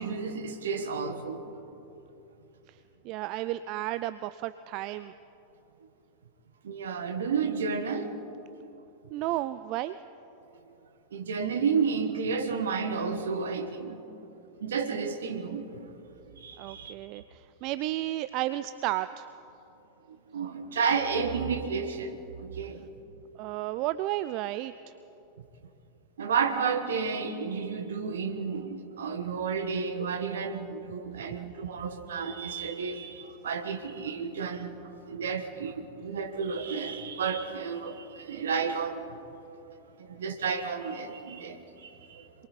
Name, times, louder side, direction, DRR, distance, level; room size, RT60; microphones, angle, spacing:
voice 1, 0.0-1.5 6.6-8.1 11.1-14.0 14.6-15.8 16.4-16.9 20.3-22.9 26.2-39.2 40.1-42.3, right 5 dB, 65° right, 7 dB, 1.5 m, -31 dB
voice 2, 3.0-5.1 9.1-10.0 16.6-19.3 23.3-24.9, right 15 dB, 40° right, 13 dB, 0.4 m, -33 dB
27.0 x 22.0 x 4.3 m, 2.9 s
figure-of-eight pair, 90°, 0 cm